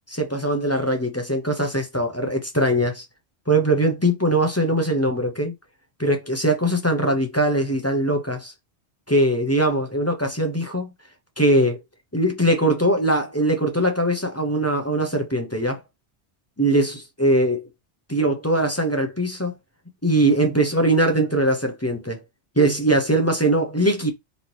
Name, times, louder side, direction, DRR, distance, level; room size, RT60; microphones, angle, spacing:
voice 1, 0.1-3.0 3.5-5.5 6.0-8.5 9.1-10.9 11.4-11.8 12.1-15.8 16.6-17.7 18.1-19.5 20.0-22.2 22.6-24.1, right 1 dB, 15° left, 0.9 m, -21 dB
4.1 x 3.6 x 3.0 m
omnidirectional pair, 1.2 m